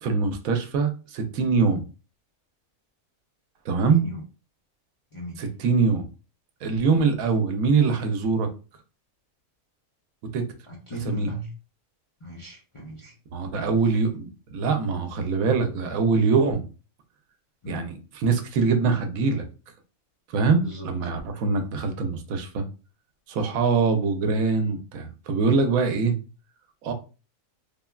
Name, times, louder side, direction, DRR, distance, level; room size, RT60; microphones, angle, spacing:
voice 1, 0.0-1.8 3.6-4.0 5.4-6.1 6.6-8.5 10.3-10.5 11.1-11.3 13.3-16.6 17.7-19.4 20.3-22.6 23.3-26.2 26.8-26.9, right 4 dB, 80° right, 6 dB, 1.0 m, -23 dB
voice 2, 3.9-4.2 5.1-5.4 10.7-11.5 12.2-13.1 13.6-13.7 17.6-17.9 20.6-20.9, right 1 dB, 45° left, -4 dB, 0.4 m, -37 dB
3.3 x 2.2 x 2.2 m, 0.33 s
omnidirectional pair, 1.4 m